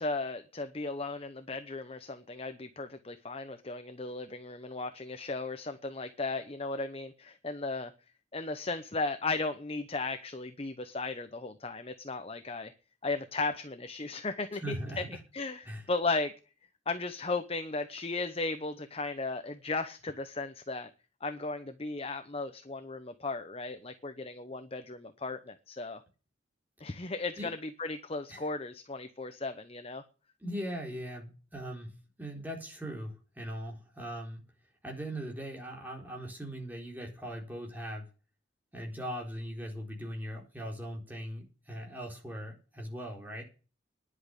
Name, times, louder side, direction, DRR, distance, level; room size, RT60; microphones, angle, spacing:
voice 1, 0.0-7.9 8.3-12.7 13.0-15.0 15.3-16.3 16.9-20.9 21.2-26.0 26.8-30.0, left 3 dB, 30° left, 9 dB, 0.9 m, -36 dB
voice 2, 14.5-15.2 15.6-15.8 27.4-27.5 28.3-28.5 30.4-31.9 32.2-34.4 34.8-38.1 38.7-43.4, equal, 10° right, 0 dB, 4.1 m, -40 dB
10.5 x 8.6 x 8.3 m, 0.35 s
head